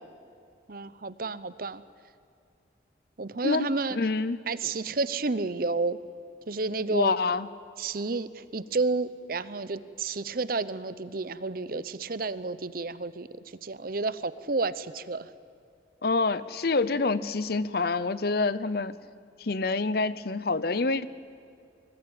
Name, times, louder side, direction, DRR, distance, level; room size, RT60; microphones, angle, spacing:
voice 1, 0.7-1.8 3.2-4.0 4.5-6.0 6.5-7.1 7.8-13.3 13.6-15.3, right 3 dB, 50° right, 15 dB, 0.8 m, -31 dB
voice 2, 3.4-4.4 6.9-7.5 16.0-19.0 19.4-21.1, left 3 dB, 55° left, 16 dB, 0.7 m, -27 dB
24.0 x 20.0 x 8.8 m, 2.5 s
head